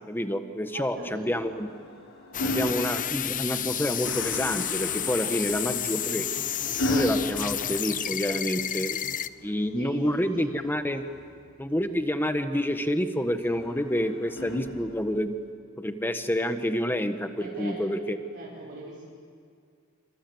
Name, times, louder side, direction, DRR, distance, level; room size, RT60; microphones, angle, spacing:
voice 1, 0.1-1.7 2.4-6.3 6.7-9.0 9.4-11.0 11.6-15.4 15.8-18.2, equal, 10° left, 8 dB, 1.4 m, -28 dB
voice 2, 0.7-1.5 5.2-5.6 9.7-10.5 17.4-18.0 18.3-19.1, right 1 dB, 60° right, -7 dB, 5.9 m, -42 dB
sound 1, 1.2-3.7 5.3-8.5 10.2-11.4 13.4-15.2 16.4-16.6, left 1 dB, 70° left, 6.5 m, -35 dB
sound 2, 2.3-9.3, left 10 dB, 40° left, 0.7 m, -31 dB
Gong, 4.0-13.0 13.3-13.4, left 2 dB, 85° left, 3.9 m, -46 dB
27.0 x 26.5 x 8.0 m, 2.2 s
head